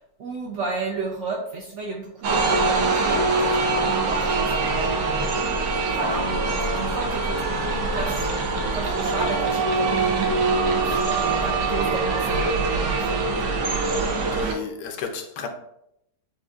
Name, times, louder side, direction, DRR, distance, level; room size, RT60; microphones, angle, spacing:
voice 1, 0.2-5.6 5.9-8.2 8.7-10.3 10.8-13.4, right 3 dB, 65° right, -1 dB, 0.7 m, -33 dB
sound 1, 2.2-14.5, right 3 dB, 85° right, 1.4 m, -23 dB
voice 2, 14.3-15.5, left 5 dB, 85° left, 5 dB, 1.3 m, -33 dB
7.6 x 2.7 x 2.4 m, 0.79 s
omnidirectional pair, 1.8 m